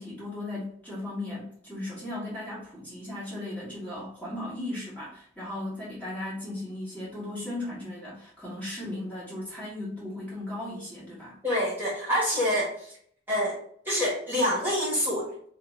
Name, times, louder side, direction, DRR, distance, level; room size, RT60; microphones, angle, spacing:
voice 1, 0.0-11.4, left 1 dB, 10° left, -9 dB, 1.3 m, -36 dB
voice 2, 11.4-12.9 13.3-13.6 13.8-15.3, equal, 10° right, -8 dB, 1.3 m, -26 dB
2.7 x 2.5 x 3.6 m, 0.62 s
head